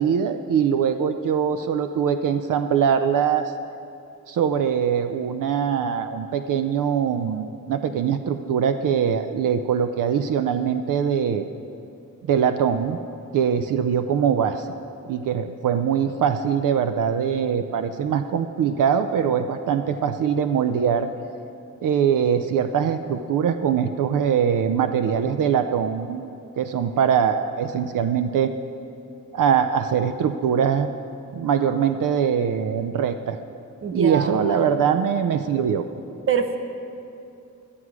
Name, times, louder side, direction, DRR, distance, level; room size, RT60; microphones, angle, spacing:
voice 1, 0.0-3.5 4.3-11.5 12.3-13.0 13.3-14.7 15.1-21.1 21.8-28.5 29.3-30.9 31.3-33.4 33.9-35.8, right 7 dB, 80° right, 9 dB, 0.5 m, -22 dB
voice 2, 33.8-34.3 36.3-36.6, right 6 dB, 45° right, 7 dB, 0.7 m, -23 dB
12.5 x 9.9 x 4.8 m, 2.6 s
wide cardioid pair, 155°, 31 cm